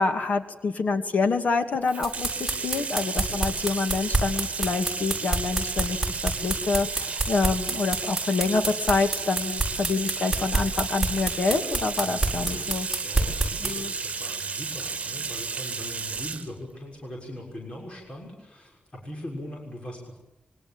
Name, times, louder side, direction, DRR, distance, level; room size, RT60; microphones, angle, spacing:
voice 1, 0.0-6.0 6.2-12.9 13.6-13.9, left 4 dB, 60° left, 6 dB, 2.4 m, -27 dB
Bathtub (filling or washing), 1.8-16.5, right 5 dB, 45° right, 2.0 m, -33 dB
sound 1, 2.0-13.7, right 2 dB, 5° right, 7.7 m, -26 dB
voice 2, 12.0-20.2, left 1 dB, 40° left, -1 dB, 6.5 m, -40 dB
27.0 x 24.5 x 8.9 m, 0.88 s
wide cardioid pair, 155°, 3 cm